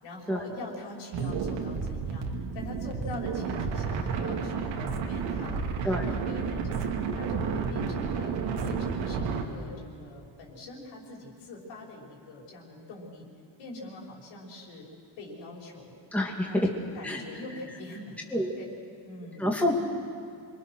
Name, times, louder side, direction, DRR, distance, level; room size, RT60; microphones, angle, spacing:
voice 1, 0.0-2.3 2.5-6.9 7.1-8.3 8.6-13.3 13.6-14.9 15.2-15.9 16.4-18.2 18.6-18.7 19.0-19.5, left 2 dB, 70° left, -1 dB, 5.7 m, -43 dB
sound 1, 1.1-9.4, right 5 dB, 70° right, 2.5 m, -31 dB
voice 2, 16.1-16.7 17.0-17.2 18.3-18.5 19.4-19.7, left 1 dB, 5° left, -1 dB, 2.4 m, -27 dB
27.5 x 23.0 x 6.4 m, 2.4 s
cardioid pair, 125°, 45 cm